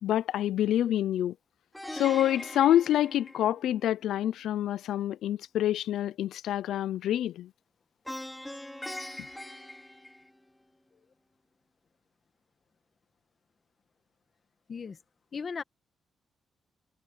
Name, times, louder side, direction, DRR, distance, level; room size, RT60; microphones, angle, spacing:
voice 1, 0.0-1.3 1.9-7.5, left 12 dB, 85° left, 0.5 m, -27 dB
Plucked string instrument, 1.7-3.9 8.0-10.7, left 1 dB, 5° left, 2.9 m, -41 dB
voice 2, 15.3-15.6, left 5 dB, 35° left, 1.7 m, -36 dB
cardioid pair, 165°, 0 cm